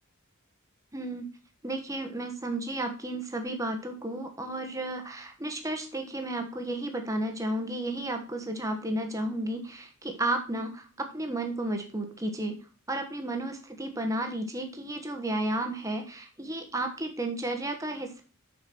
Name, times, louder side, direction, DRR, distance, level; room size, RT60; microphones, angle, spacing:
voice 1, 0.9-1.3 1.6-12.6 12.9-18.2, right 1 dB, 15° right, 4 dB, 1.3 m, -33 dB
6.7 x 5.9 x 6.1 m, 0.37 s
head